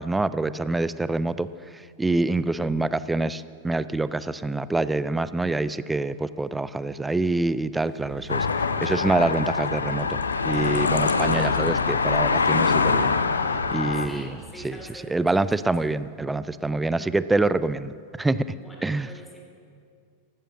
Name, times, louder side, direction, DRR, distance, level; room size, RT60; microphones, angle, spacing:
voice 1, 0.0-1.5 1.7-10.2 10.4-13.2 13.7-14.4 14.6-18.5 18.8-19.1, right 2 dB, 10° right, 16 dB, 0.4 m, -26 dB
sound 1, 7.7-14.6, right 2 dB, 30° right, 5.1 m, -45 dB
sound 2, 8.3-14.1, left 4 dB, 75° left, 0.7 m, -24 dB
voice 2, 14.0-15.4 18.5-19.4, equal, 5° left, 0 dB, 3.5 m, -44 dB
15.0 x 12.0 x 7.4 m, 2.3 s
figure-of-eight pair, 90°, 0 cm